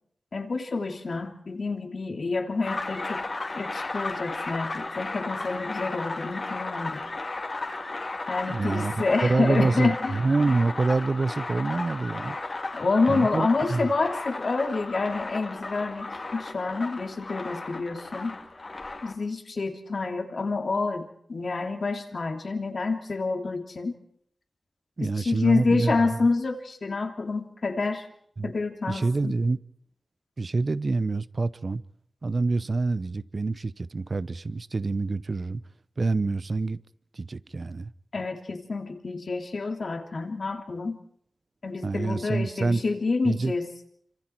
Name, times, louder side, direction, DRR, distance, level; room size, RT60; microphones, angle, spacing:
voice 1, 0.3-3.2 3.5-7.0 8.3-10.2 12.7-18.4 19.0-21.0 21.3-23.9 25.0-28.0 28.4-29.3 38.1-41.0 41.6-43.7, left 3 dB, 60° left, 3.0 m, -28 dB
sound 1, 2.6-19.1, left 2 dB, 45° left, 3.0 m, -35 dB
voice 2, 8.5-12.4 13.1-13.9 25.0-26.1 28.4-28.5 28.9-29.6 30.4-31.8 32.2-35.6 36.0-36.8 37.1-37.9 41.8-42.8 43.2-43.5, right 3 dB, 50° right, 0.8 m, -26 dB
27.5 x 25.5 x 4.6 m
wide cardioid pair, 70°, 0 cm